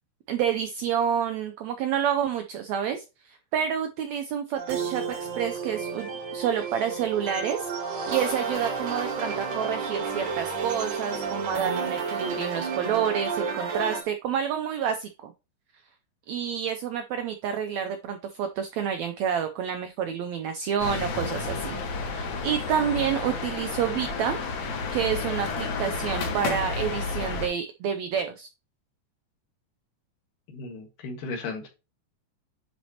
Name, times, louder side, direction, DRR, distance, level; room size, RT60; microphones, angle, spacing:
voice 1, 0.3-7.7 8.1-15.3 16.3-24.4 24.9-28.5, right 8 dB, 90° right, 1.6 m, -29 dB
sound 1, 4.6-14.0, right 5 dB, 70° right, 1.0 m, -31 dB
sound 2, 20.8-27.5, left 4 dB, 60° left, 2.4 m, -31 dB
voice 2, 30.5-31.7, left 3 dB, 75° left, 3.3 m, -35 dB
10.0 x 4.2 x 2.9 m
omnidirectional pair, 3.9 m